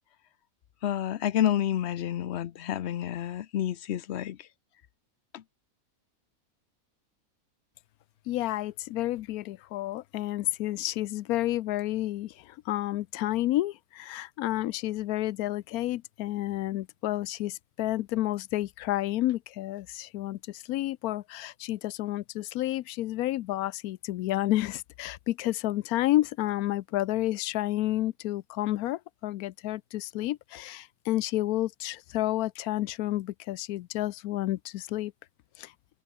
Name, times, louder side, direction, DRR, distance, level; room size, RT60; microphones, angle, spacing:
voice 1, 0.8-4.5 5.3-5.4, left 11 dB, 60° left, 0.8 m, -29 dB
voice 2, 8.3-35.1 35.6-35.7, left 15 dB, 85° left, 1.1 m, -30 dB
omnidirectional pair, 1.5 m